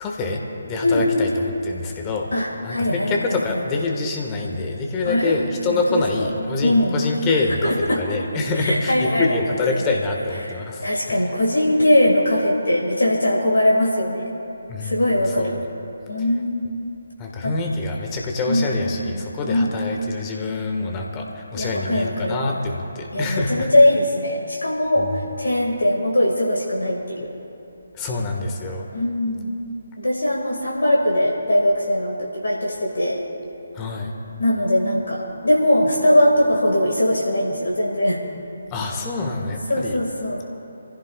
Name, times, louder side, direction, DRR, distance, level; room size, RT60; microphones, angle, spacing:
voice 1, 0.0-2.3 2.6-11.2 14.7-15.1 15.4-15.6 17.2-23.7 27.9-28.9 33.7-34.1 38.7-40.0, left 3 dB, 20° left, 1 dB, 1.5 m, -26 dB
voice 2, 2.3-3.6 5.0-5.4 5.7-6.3 6.6-7.0 7.6-8.0 8.6-9.3 9.7-9.8 10.4-10.5 10.8-14.3 14.8-15.6 16.1-16.9 17.4-17.6 18.5-19.8 21.5-22.4 23.1-27.3 28.9-29.6 30.0-33.3 34.4-38.2 39.7-40.4, left 1 dB, 65° left, -2 dB, 1.9 m, -21 dB
26.5 x 15.5 x 2.3 m, 2.8 s
figure-of-eight pair, 145°, 0 cm